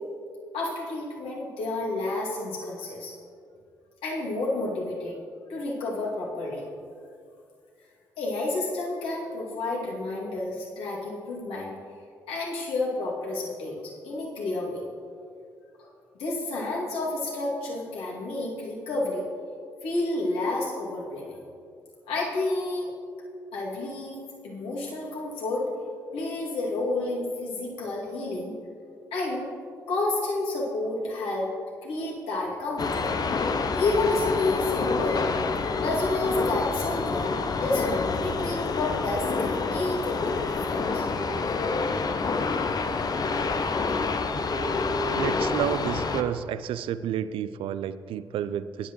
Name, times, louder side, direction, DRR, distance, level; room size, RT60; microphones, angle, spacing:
voice 1, 0.5-3.1 4.0-5.2 5.5-6.6 8.2-11.7 12.3-14.8 15.8-15.9 16.2-19.3 19.8-21.4 22.1-22.9 23.5-24.2 24.4-25.7 26.1-28.6 29.1-29.5 29.9-31.5 31.8-33.1 33.7-35.2 35.8-37.3 37.6-41.0, left 2 dB, 65° left, -4 dB, 2.5 m, -30 dB
sound 1, 32.8-46.2, left 4 dB, 40° left, 0.8 m, -28 dB
sound 2, 40.5-42.9 43.1-46.1, equal, 5° right, 1.9 m, -39 dB
voice 2, 45.1-48.9, right 10 dB, 60° right, 14 dB, 0.4 m, -30 dB
16.0 x 11.0 x 3.1 m, 2.3 s
figure-of-eight pair, 40°, 10 cm